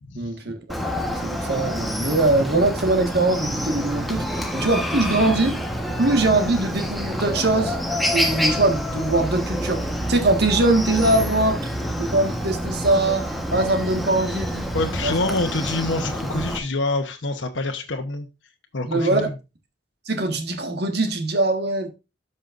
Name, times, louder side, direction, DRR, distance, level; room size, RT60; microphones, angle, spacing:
voice 1, 0.1-0.6 1.2-5.6 6.0-7.8 8.1-11.6 11.9-14.7 15.0-15.1 18.8-19.3 20.1-21.9, right 2 dB, 60° right, 1.6 m, -22 dB
Chicken rooster, 0.7-16.6, equal, ahead, 1.2 m, -27 dB
voice 2, 14.7-18.3 18.7-19.3, left 2 dB, 90° left, 1.0 m, -26 dB
13.0 x 5.5 x 2.5 m
head